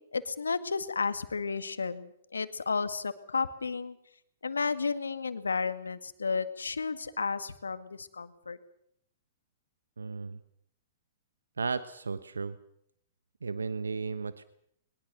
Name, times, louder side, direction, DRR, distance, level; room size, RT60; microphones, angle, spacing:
voice 1, 0.1-4.0 4.4-8.6, left 4 dB, 85° left, 11 dB, 1.9 m, -32 dB
voice 2, 10.0-10.4 11.6-12.6 13.4-14.4, right 4 dB, 85° right, 13 dB, 1.1 m, -34 dB
22.0 x 20.5 x 6.8 m, 0.71 s
hypercardioid pair, 115°, 0 cm